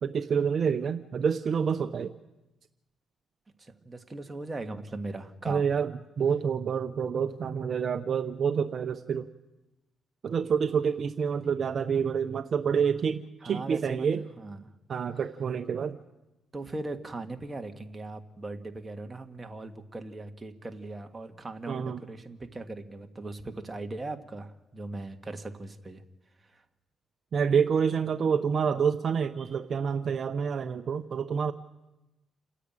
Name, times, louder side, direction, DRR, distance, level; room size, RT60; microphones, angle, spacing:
voice 1, 0.0-2.1 5.5-9.3 10.2-14.2 14.9-16.0 21.7-22.0 27.3-31.5, right 6 dB, 50° right, 9 dB, 0.8 m, -28 dB
voice 2, 3.6-5.6 13.4-14.1 14.4-14.7 16.5-26.0 26.5-26.6, right 2 dB, 20° right, 5 dB, 1.7 m, -39 dB
29.0 x 10.0 x 8.9 m, 1.0 s
cardioid pair, 90°, 0 cm